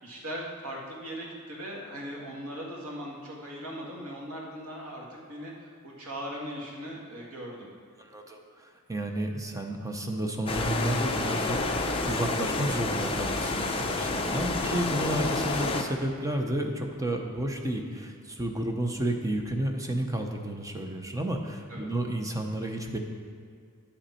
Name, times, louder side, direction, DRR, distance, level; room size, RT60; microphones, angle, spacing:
voice 1, 0.0-7.7 14.5-14.8 21.7-21.9, equal, 75° right, -2 dB, 1.8 m, -39 dB
voice 2, 8.0-23.0, right 1 dB, 15° right, 3 dB, 0.7 m, -31 dB
sound 1, 10.5-15.8, left 3 dB, 25° left, 0.6 m, -29 dB
9.9 x 8.0 x 4.3 m, 2.2 s
head